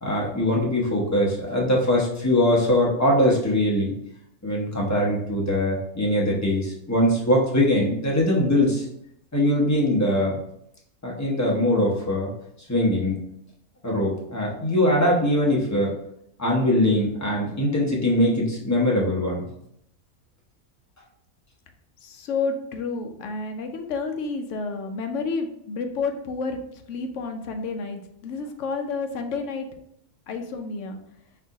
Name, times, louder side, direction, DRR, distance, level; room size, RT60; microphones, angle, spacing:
voice 1, 0.0-3.9 4.4-8.9 9.3-10.4 11.0-12.3 12.7-13.2 13.8-15.9 16.4-19.5, left 1 dB, 15° left, -3 dB, 0.6 m, -22 dB
voice 2, 22.0-29.7 30.3-31.0, left 4 dB, 65° left, 5 dB, 0.8 m, -30 dB
4.4 x 2.5 x 3.9 m, 0.74 s
omnidirectional pair, 1.5 m